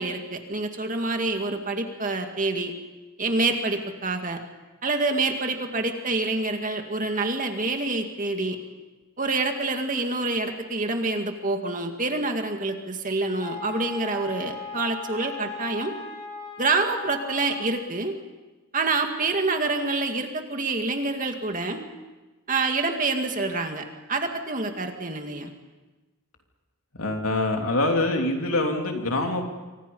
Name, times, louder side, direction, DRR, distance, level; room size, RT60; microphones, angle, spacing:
voice 1, 0.0-2.7 3.2-4.4 4.8-8.6 9.2-15.9 16.6-18.1 18.7-21.8 22.5-25.5, right 3 dB, 35° right, 4 dB, 2.2 m, -27 dB
Wind instrument woodwind instrument, 13.4-17.9, left 3 dB, 25° left, 5.3 m, -38 dB
voice 2, 27.0-29.5, left 2 dB, 70° left, 3 dB, 3.2 m, -25 dB
28.5 x 24.5 x 5.6 m, 1.2 s
head